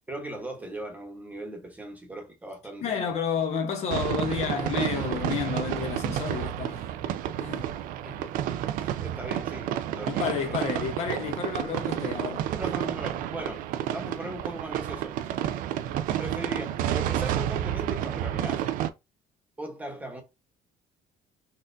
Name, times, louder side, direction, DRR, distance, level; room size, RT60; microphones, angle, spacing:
voice 1, 0.1-3.1 8.0-8.3 8.8-10.7 12.6-13.6 13.9-15.4 16.2-18.7 19.6-20.2, right 1 dB, 10° right, 1.0 m, -38 dB
voice 2, 2.8-6.9 7.4-7.7 10.0-12.5 12.8-12.9, left 6 dB, 50° left, 0.8 m, -31 dB
sound 1, 3.9-18.9, right 11 dB, 75° right, 0.4 m, -30 dB
4.1 x 2.4 x 2.6 m
cardioid pair, 140°, 14 cm